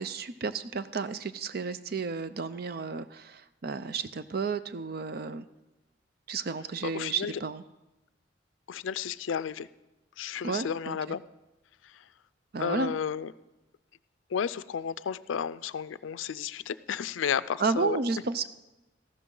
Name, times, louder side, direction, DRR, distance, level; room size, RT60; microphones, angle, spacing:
voice 1, 0.0-5.4 6.3-7.6 10.4-11.0 12.5-12.9 17.6-18.5, right 4 dB, 50° right, 13 dB, 0.5 m, -32 dB
voice 2, 6.8-7.4 8.7-9.7 10.2-11.2 11.8-12.1 12.6-13.3 14.3-18.0, left 7 dB, 85° left, 16 dB, 0.4 m, -32 dB
14.0 x 12.5 x 3.8 m, 1.0 s
head